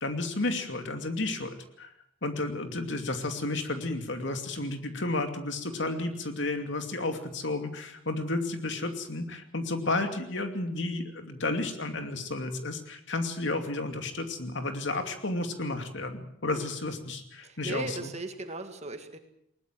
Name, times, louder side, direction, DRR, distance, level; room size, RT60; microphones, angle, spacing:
voice 1, 0.0-1.9 2.2-18.1, left 2 dB, 65° left, 6 dB, 2.6 m, -32 dB
voice 2, 16.5-17.0 17.4-19.2, right 2 dB, 35° right, 7 dB, 1.9 m, -38 dB
20.5 x 19.0 x 7.7 m, 0.72 s
head